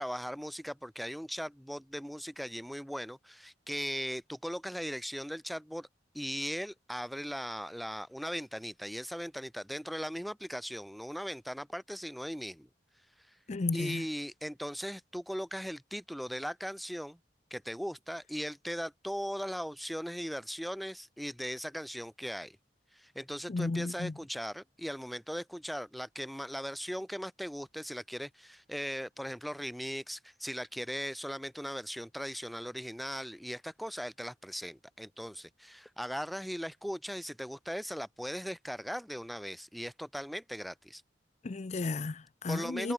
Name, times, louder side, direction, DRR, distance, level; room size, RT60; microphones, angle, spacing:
voice 1, 0.0-5.9 6.1-12.7 13.7-17.2 17.5-22.6 22.9-41.0 42.5-42.9, equal, ahead, 1.7 m, -38 dB
voice 2, 13.5-14.0 23.5-24.1 41.4-42.9, left 3 dB, 40° left, 0.5 m, -33 dB
head